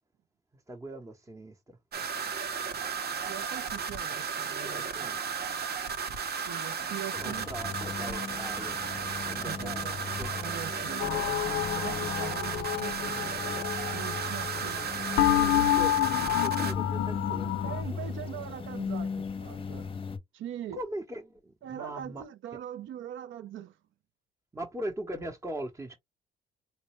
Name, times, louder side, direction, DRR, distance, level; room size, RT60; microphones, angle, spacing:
voice 1, 0.5-1.8 4.6-5.2 7.1-8.8 9.2-10.5 15.3-18.2 20.7-22.2 24.5-25.9, right 1 dB, 15° right, 0.8 m, -40 dB
sound 1, 1.9-16.7, right 6 dB, 55° right, 0.9 m, -34 dB
voice 2, 3.3-5.2 6.5-7.8 9.5-10.0 10.4-13.4 13.9-15.2 17.6-19.9 20.3-20.8 21.6-23.8, right 11 dB, 75° right, 0.6 m, -42 dB
sound 2, 7.2-20.2, left 5 dB, 25° left, 0.7 m, -38 dB
sound 3, 11.0-14.8 15.1-17.8, left 13 dB, 80° left, 0.4 m, -29 dB
4.1 x 2.1 x 3.0 m
cardioid pair, 90°, 20 cm